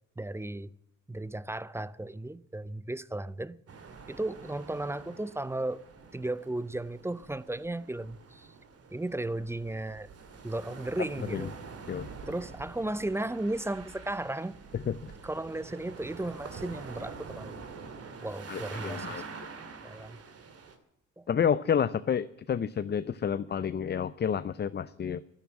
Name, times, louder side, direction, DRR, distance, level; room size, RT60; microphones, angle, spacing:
voice 1, 0.2-0.7 1.1-3.6 4.1-5.9 6.1-8.5 8.9-10.1 10.4-11.5 12.3-14.6 15.2-17.6 18.2-19.2 19.8-20.2 21.2-21.3, right 2 dB, 10° right, 0.5 m, -35 dB
sound 1, 3.7-20.8, right 5 dB, 50° right, 2.4 m, -46 dB
voice 2, 14.7-15.1 18.5-19.2 21.3-25.2, left 8 dB, 35° left, 0.6 m, -30 dB
12.0 x 10.5 x 9.6 m
cardioid pair, 90°, 30 cm